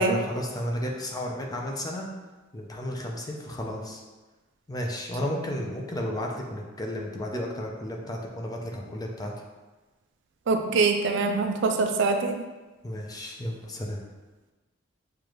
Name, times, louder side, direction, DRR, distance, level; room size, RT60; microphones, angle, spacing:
voice 1, 0.0-2.1 2.5-4.0 4.7-9.3 12.8-14.0, left 1 dB, 20° left, 0 dB, 0.5 m, -33 dB
voice 2, 10.5-12.4, right 3 dB, 65° right, 5 dB, 0.4 m, -24 dB
6.7 x 2.5 x 3.0 m, 1.2 s
head